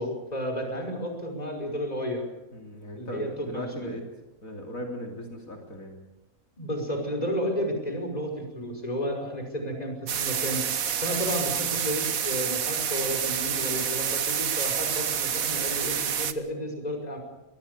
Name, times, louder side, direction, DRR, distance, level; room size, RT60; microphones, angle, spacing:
voice 1, 0.0-2.3 3.0-3.9 6.6-10.6 11.0-17.2, equal, 30° left, 3 dB, 5.6 m, -32 dB
voice 2, 2.5-4.0 4.4-6.0 11.7-11.8, left 1 dB, 80° left, 1 dB, 3.5 m, -38 dB
sound 1, 10.1-16.3, right 8 dB, 85° right, 1.6 m, -28 dB
23.0 x 23.0 x 6.8 m, 0.99 s
omnidirectional pair, 1.4 m